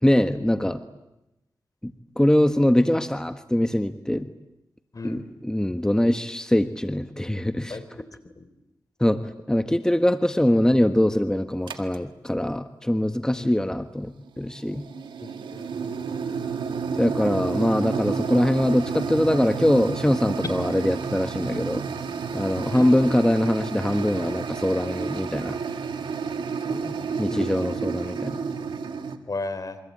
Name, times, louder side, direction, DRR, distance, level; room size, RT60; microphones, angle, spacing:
voice 1, 0.0-0.8 1.8-4.3 5.0-7.8 9.0-14.8 17.0-21.9 22.3-25.6 27.2-28.4, left 1 dB, 10° left, 8 dB, 1.4 m, -23 dB
voice 2, 4.9-5.2 7.7-8.1 8.4-8.5 13.3-13.5 15.2-15.7 22.7-22.9 26.7-27.0 27.3-27.6 29.3-29.8, left 3 dB, 50° left, 12 dB, 3.7 m, -35 dB
sound 1, 11.7-12.0 14.3-29.2, right 5 dB, 85° right, 2.0 m, -31 dB
27.5 x 24.5 x 8.7 m, 0.93 s
cardioid pair, 50°, 8 cm